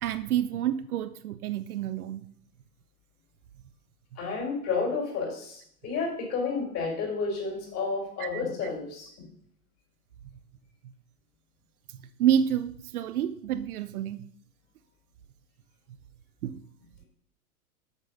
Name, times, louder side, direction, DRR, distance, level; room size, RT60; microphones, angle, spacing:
voice 1, 0.0-2.2 8.2-8.4 12.2-14.3 16.4-16.6, right 10 dB, 70° right, 12 dB, 0.8 m, -28 dB
voice 2, 4.2-9.1, left 4 dB, 30° left, -1 dB, 4.6 m, -31 dB
8.2 x 6.5 x 5.4 m, 0.65 s
hypercardioid pair, 120°, 46 cm